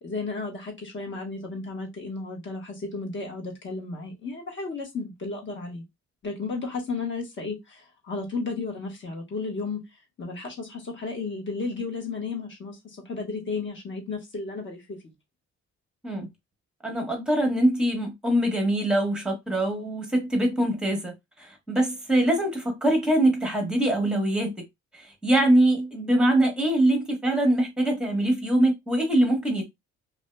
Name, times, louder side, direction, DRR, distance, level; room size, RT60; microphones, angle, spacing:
voice 1, 0.0-5.8 6.2-9.8 10.2-15.0, left 3 dB, 40° left, 1.2 m, -33 dB
voice 2, 16.8-24.6 24.9-29.6, right 1 dB, 5° right, 1.2 m, -23 dB
2.6 x 2.3 x 2.2 m
cardioid pair, 90°, 30 cm